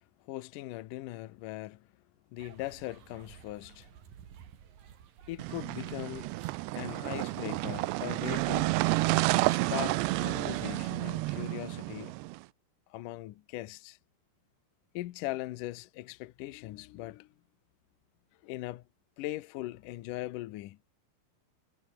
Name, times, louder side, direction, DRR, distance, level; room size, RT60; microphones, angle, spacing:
voice 1, 0.2-1.9 2.3-3.9 5.3-6.3 6.8-8.9 9.5-12.1 12.9-14.0 14.9-17.3 18.4-18.8 19.2-20.8, left 17 dB, 80° left, 1.9 m, -40 dB
sound 1, 2.4-8.6, right 9 dB, 55° right, 3.8 m, -55 dB
sound 2, 5.4-12.4, right 21 dB, 85° right, 2.8 m, -30 dB
omnidirectional pair, 5.0 m